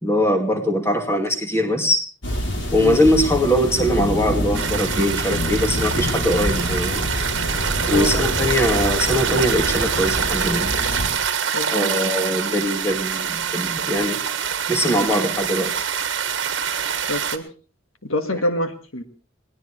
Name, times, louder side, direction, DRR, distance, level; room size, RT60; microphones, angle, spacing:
voice 1, 0.0-2.0 2.7-7.1 7.9-10.7 11.7-14.2 14.7-15.8, equal, 10° left, 4 dB, 2.3 m, -21 dB
sound 1, 2.2-11.1, left 1 dB, 55° left, 3.6 m, -27 dB
sound 2, 4.5-17.4, right 8 dB, 60° right, 1.5 m, -25 dB
sound 3, 5.3-10.5, right 2 dB, 75° right, 1.3 m, -32 dB
voice 2, 11.5-11.9 17.1-17.5 18.0-19.0, left 1 dB, 80° left, 7 dB, 1.9 m, -25 dB
21.0 x 19.5 x 3.3 m, 0.37 s
head